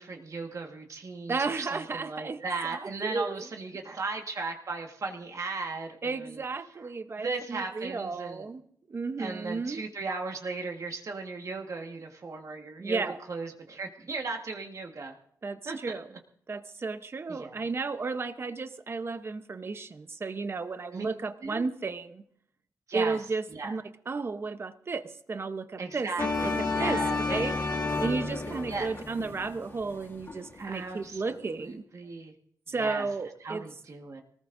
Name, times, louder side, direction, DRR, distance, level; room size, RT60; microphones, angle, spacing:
voice 1, 0.0-6.4 7.2-8.5 9.2-15.1 15.6-15.8 17.3-17.6 20.9-21.1 21.4-21.7 22.9-23.2 23.5-23.7 25.8-27.2 28.5-28.9 30.6-32.3 32.8-33.1 33.4-34.2, right 3 dB, 50° right, 3 dB, 1.5 m, -37 dB
voice 2, 1.3-3.5 6.0-8.6 8.9-9.8 12.8-13.2 15.4-16.1 16.5-22.2 22.9-26.1 26.4-26.5 26.8-31.8 32.7-33.6, right 4 dB, 35° right, 10 dB, 0.8 m, -33 dB
sound 1, 26.2-30.6, left 3 dB, 35° left, 1.5 m, -31 dB
22.5 x 19.0 x 2.6 m, 0.65 s
wide cardioid pair, 160°, 7 cm